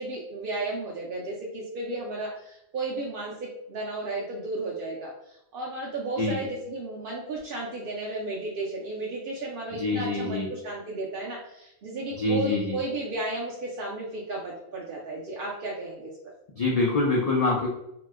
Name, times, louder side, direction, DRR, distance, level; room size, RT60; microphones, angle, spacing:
voice 1, 0.0-16.1, right 2 dB, 55° right, -3 dB, 0.7 m, -34 dB
voice 2, 9.8-10.5 12.1-12.8 16.6-17.7, left 2 dB, 60° left, -2 dB, 0.4 m, -25 dB
2.9 x 2.1 x 3.5 m, 0.83 s
omnidirectional pair, 1.3 m